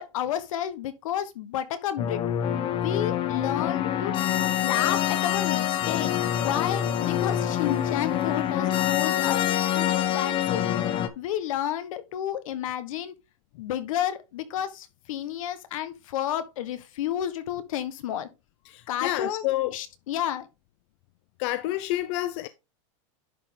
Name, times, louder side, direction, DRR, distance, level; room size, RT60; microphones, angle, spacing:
voice 1, 0.0-2.2 2.8-4.2 4.6-10.7 11.1-13.1 13.6-18.3 18.9-19.4 19.7-20.5, left 11 dB, 80° left, 1.4 m, -31 dB
sound 1, 2.0-11.1, left 11 dB, 30° left, 0.8 m, -26 dB
voice 2, 18.7-19.8 21.4-22.5, left 15 dB, 55° left, 0.6 m, -28 dB
11.0 x 4.0 x 3.7 m
supercardioid pair, 150°, 17 cm